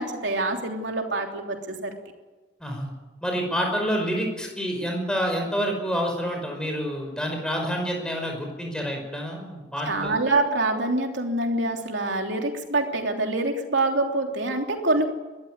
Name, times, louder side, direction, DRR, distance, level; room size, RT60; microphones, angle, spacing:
voice 1, 0.0-1.9 9.9-15.1, right 2 dB, 80° right, 3 dB, 3.2 m, -25 dB
voice 2, 3.2-10.2, equal, 5° left, 2 dB, 5.4 m, -28 dB
22.0 x 14.0 x 9.6 m, 1.2 s
head